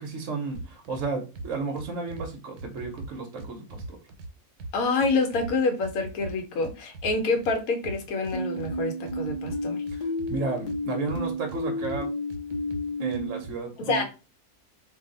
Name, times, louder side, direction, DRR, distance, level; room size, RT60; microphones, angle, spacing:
voice 1, 0.0-4.0 9.9-10.0 10.3-12.1 13.0-14.0, right 4 dB, 60° right, 2 dB, 0.9 m, -33 dB
sound 1, 0.5-1.1 1.4-2.3 2.6-4.3 4.6-5.5 5.8-7.5 7.8-8.8 9.1-10.8 11.1-12.0 12.3-13.5, right 2 dB, 80° right, 1.1 m, -39 dB
voice 2, 4.7-9.8 13.9-14.0, left 3 dB, 70° left, 5 dB, 1.2 m, -27 dB
sound 2, 8.3-13.4, left 1 dB, 50° left, 0.5 m, -32 dB
2.6 x 2.3 x 3.8 m, 0.31 s
omnidirectional pair, 1.6 m